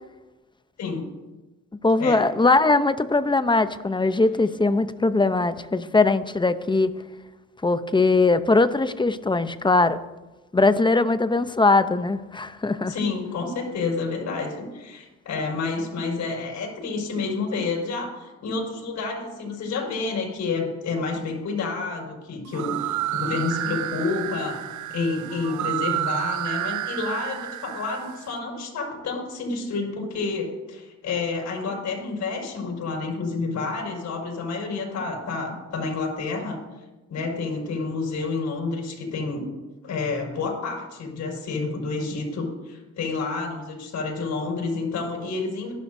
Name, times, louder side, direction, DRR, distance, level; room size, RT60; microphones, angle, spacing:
voice 1, 1.8-6.9 7.6-10.0 10.5-12.9, left 3 dB, 15° left, 12 dB, 0.7 m, -20 dB
voice 2, 12.9-36.6 37.1-39.4 39.8-45.7, left 4 dB, 65° left, 0 dB, 5.5 m, -29 dB
sound 1, 22.5-28.3, right 14 dB, 75° right, 0.7 m, -30 dB
25.0 x 11.5 x 2.7 m, 1.2 s
cardioid pair, 90°, 30 cm